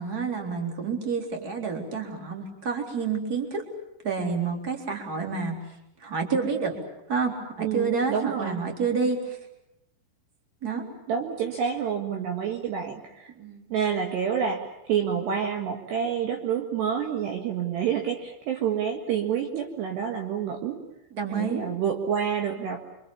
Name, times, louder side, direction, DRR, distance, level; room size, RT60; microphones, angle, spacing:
voice 1, 0.0-3.6 4.0-5.6 6.0-6.8 7.1-9.4 10.6-10.9 13.4-13.7 21.1-21.7, right 5 dB, 20° right, 2 dB, 3.5 m, -29 dB
voice 2, 7.6-8.6 11.1-13.3 13.7-20.8 21.3-22.8, right 8 dB, 60° right, 3 dB, 3.5 m, -28 dB
28.5 x 25.5 x 7.1 m, 0.83 s
omnidirectional pair, 6.0 m